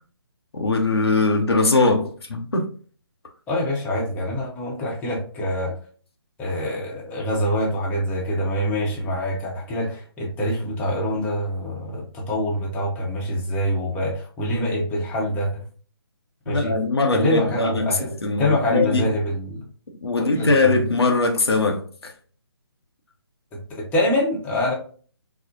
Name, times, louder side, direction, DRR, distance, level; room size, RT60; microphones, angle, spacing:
voice 1, 0.5-2.7 16.5-19.0 20.0-22.1, left 3 dB, 75° left, 0.7 m, -21 dB
voice 2, 3.5-5.7 6.4-15.6 16.5-16.7 17.1-18.1 18.4-19.6 20.2-20.7 23.7-24.7, left 1 dB, 10° left, 0.8 m, -25 dB
4.2 x 2.0 x 2.6 m
figure-of-eight pair, 140°, 13 cm